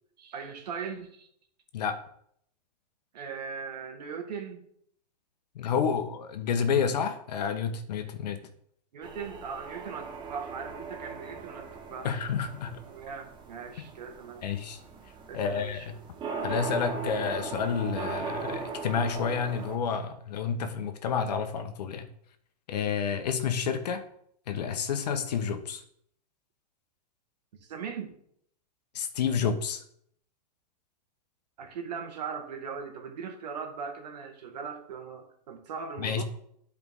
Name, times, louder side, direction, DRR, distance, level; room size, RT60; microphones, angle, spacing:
voice 1, 0.2-1.3 3.1-4.7 8.9-12.2 12.9-14.4 15.3-15.9 27.5-28.1 31.6-36.2, right 6 dB, 75° right, 3 dB, 1.9 m, -39 dB
voice 2, 5.5-8.4 12.0-12.8 13.8-13.9 14.4-14.8 15.3-16.0 16.4-22.1 22.7-24.0 24.5-25.8 28.9-29.8 36.0-36.2, left 6 dB, 75° left, 8 dB, 1.2 m, -30 dB
sound 1, 9.0-19.8, right 4 dB, 20° right, 1.1 m, -39 dB
11.0 x 4.9 x 3.7 m, 0.69 s
hypercardioid pair, 140°, 21 cm